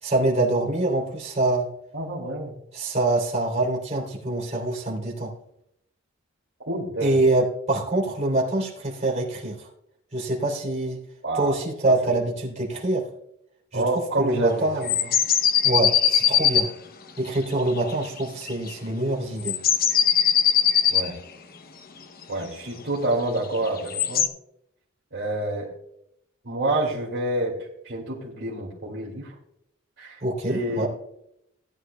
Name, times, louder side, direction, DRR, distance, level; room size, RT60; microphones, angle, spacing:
voice 1, 0.0-1.7 2.7-5.3 7.0-9.7 10.1-11.0 11.3-13.1 13.7-13.8 14.2-15.1 15.6-16.7 17.2-19.6 30.2-30.9, right 2 dB, 35° right, -3 dB, 3.1 m, -25 dB
voice 2, 1.9-2.5 6.7-7.2 11.2-12.0 13.7-14.7 20.9-21.2 22.3-24.3 25.1-25.7 26.4-29.3 30.0-30.9, right 2 dB, 60° right, -5 dB, 2.4 m, -28 dB
sound 1, 14.8-16.7 17.8-18.2 18.5-18.7 19.4-21.1 23.6-24.3, left 8 dB, 45° left, 0.7 m, -20 dB
18.0 x 10.0 x 2.3 m, 0.77 s
head